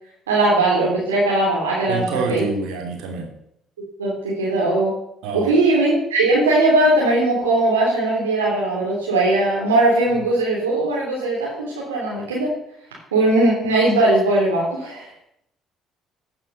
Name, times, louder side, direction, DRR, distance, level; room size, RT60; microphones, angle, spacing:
voice 1, 0.3-2.4 4.0-4.9 5.3-12.5 13.1-15.1, right 2 dB, 85° right, -5 dB, 3.2 m, -19 dB
voice 2, 1.9-3.3 5.2-5.5, right 4 dB, 70° right, 3 dB, 3.0 m, -27 dB
15.5 x 7.2 x 6.7 m, 0.77 s
hypercardioid pair, 50°, 0 cm